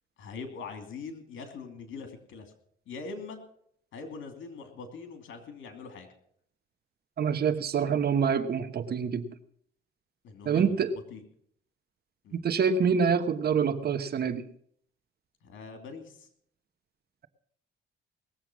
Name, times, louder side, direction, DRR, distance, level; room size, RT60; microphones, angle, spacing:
voice 1, 0.2-2.5 2.9-3.4 3.9-6.1 10.2-10.8 11.1-11.2 12.2-12.5 15.4-16.3, left 4 dB, 75° left, 6 dB, 2.8 m, -42 dB
voice 2, 7.2-9.3 10.5-10.9 12.3-14.4, right 6 dB, 50° right, 11 dB, 1.1 m, -26 dB
19.5 x 7.9 x 6.2 m, 0.67 s
cardioid pair, 90°, 20 cm